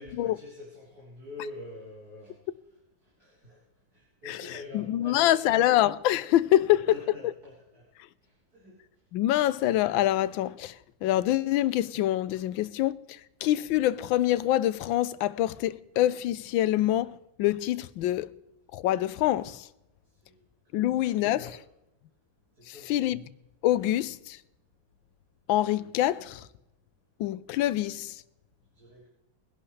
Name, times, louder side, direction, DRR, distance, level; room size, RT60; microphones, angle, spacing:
voice 1, 0.0-2.4 3.2-3.6 3.9-5.8 6.9-7.9 8.2-8.8 20.2-20.4 20.7-21.1 21.4-21.6 22.6-23.0 28.7-29.1, left 2 dB, 50° right, 4.1 m, -46 dB
voice 2, 4.3-6.9 7.2-7.3 9.1-10.8 11.0-18.3 18.7-19.7 20.7-21.6 22.7-23.2 23.6-24.4 25.5-26.5 27.2-28.2, left 13 dB, 85° left, 1.4 m, -26 dB
22.5 x 11.0 x 3.2 m
omnidirectional pair, 2.1 m